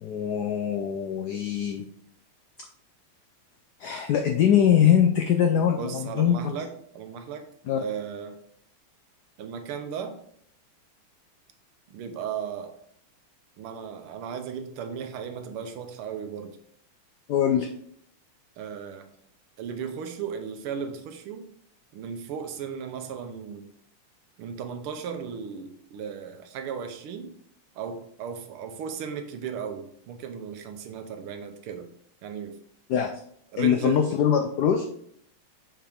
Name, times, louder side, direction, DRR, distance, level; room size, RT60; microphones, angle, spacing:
voice 1, 0.0-1.8 3.8-6.4 7.7-7.8 17.3-17.7 32.9-33.1 33.6-34.9, left 9 dB, 90° left, 5 dB, 0.8 m, -22 dB
voice 2, 5.8-7.5 7.8-8.4 9.4-10.2 11.9-12.7 13.6-16.6 18.6-19.0 19.6-21.5 21.9-23.7 24.4-27.3 27.7-31.9 32.2-32.6 33.5-34.0, right 7 dB, 80° right, 7 dB, 1.7 m, -36 dB
7.3 x 4.6 x 3.5 m, 0.66 s
omnidirectional pair, 2.4 m